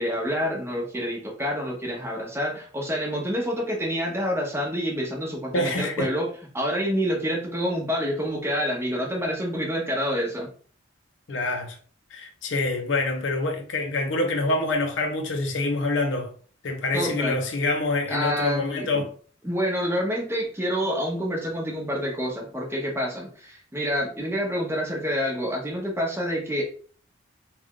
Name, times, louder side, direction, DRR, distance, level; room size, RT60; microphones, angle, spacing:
voice 1, 0.0-6.3 6.5-10.5 16.9-17.4 18.1-19.1 19.4-26.6, equal, 10° right, 0.9 m, -27 dB
voice 2, 5.5-6.1 11.3-11.8 12.1-16.3 16.6-19.1, left 2 dB, 65° left, 0.6 m, -26 dB
3.4 x 2.3 x 3.6 m
head